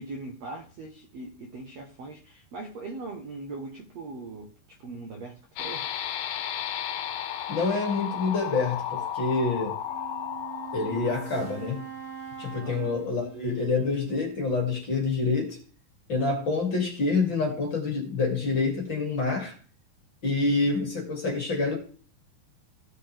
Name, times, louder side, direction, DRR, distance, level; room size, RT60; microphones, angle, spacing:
voice 1, 0.0-5.9 12.6-12.9, right 3 dB, 70° right, 1.6 m, -40 dB
sound 1, 5.6-11.7, left 10 dB, 70° left, 2.5 m, -34 dB
voice 2, 7.5-9.8 10.7-11.8 12.4-15.6 16.1-19.5 20.2-21.8, left 3 dB, 35° left, 2.6 m, -27 dB
Wind instrument woodwind instrument, 9.8-14.7, right 9 dB, 85° right, 5.1 m, -43 dB
16.5 x 6.7 x 3.4 m
omnidirectional pair, 4.7 m